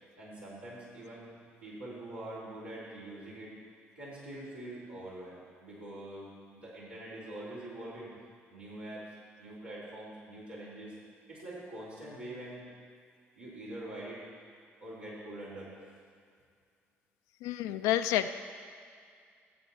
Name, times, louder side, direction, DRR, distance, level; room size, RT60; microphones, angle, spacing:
voice 1, 0.2-1.3 1.6-3.5 3.9-8.1 8.5-9.1 9.4-10.9 11.3-12.7 13.3-14.2 14.8-15.8, right 1 dB, 85° right, -11 dB, 3.5 m, -44 dB
voice 2, 17.4-18.3, left 12 dB, 65° left, 9 dB, 0.4 m, -29 dB
14.5 x 8.4 x 4.3 m, 2.2 s
figure-of-eight pair, 45°, 7 cm